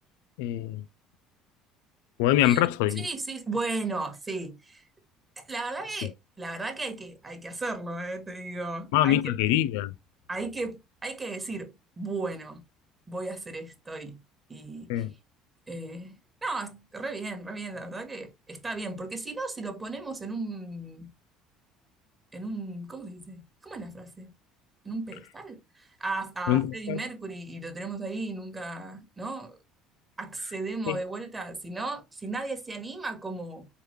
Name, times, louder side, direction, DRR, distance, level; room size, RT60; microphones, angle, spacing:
voice 1, 0.4-0.8 2.2-3.1 8.9-9.9 14.9-15.1 26.5-27.0 30.9-31.0, left 13 dB, 75° left, 0.4 m, -24 dB
voice 2, 2.4-4.8 5.4-9.4 10.3-12.7 13.1-14.2 14.5-15.0 15.7-16.1 16.4-21.1 22.3-24.3 24.8-29.6 30.2-33.7, right 3 dB, 20° right, 1.4 m, -35 dB
4.7 x 3.4 x 3.2 m
hypercardioid pair, 65°, 0 cm